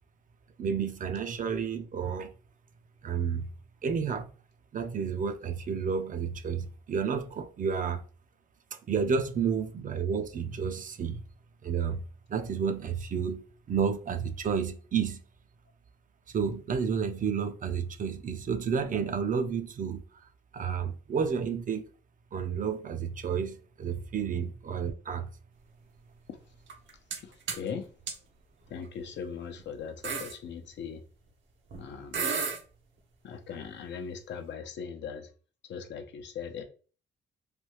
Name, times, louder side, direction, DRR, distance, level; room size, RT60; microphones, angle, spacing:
voice 1, 0.6-2.3 3.0-3.5 3.8-4.3 4.7-8.0 8.7-11.2 11.6-12.0 12.3-15.2 16.3-21.9 22.3-25.3, right 6 dB, 40° right, 0.5 m, -31 dB
sound 1, 26.7-27.2 27.5-27.7 28.1-28.2 29.0-29.2 29.6-29.7 30.0-30.3 31.7-31.8 32.1-32.6, right 5 dB, 70° right, 0.8 m, -32 dB
voice 2, 27.2-27.9 28.7-31.0 31.8-32.3 33.2-35.3 35.7-36.6, left 6 dB, 65° left, 0.6 m, -39 dB
3.3 x 2.2 x 3.0 m
cardioid pair, 90°, 20 cm